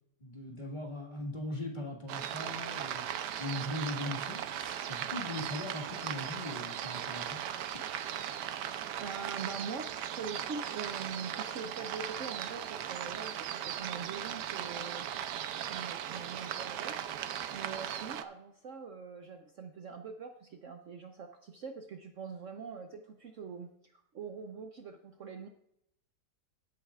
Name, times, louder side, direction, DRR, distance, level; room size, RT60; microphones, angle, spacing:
voice 1, 0.2-3.1 3.4-7.4, left 1 dB, 30° left, -1 dB, 1.8 m, -40 dB
sound 1, 2.1-18.2, right 10 dB, 80° right, 1.3 m, -38 dB
voice 2, 9.0-15.1 15.7-17.1 17.5-25.5, right 5 dB, 60° right, 5 dB, 0.9 m, -43 dB
16.0 x 8.7 x 2.4 m, 0.76 s
omnidirectional pair, 1.8 m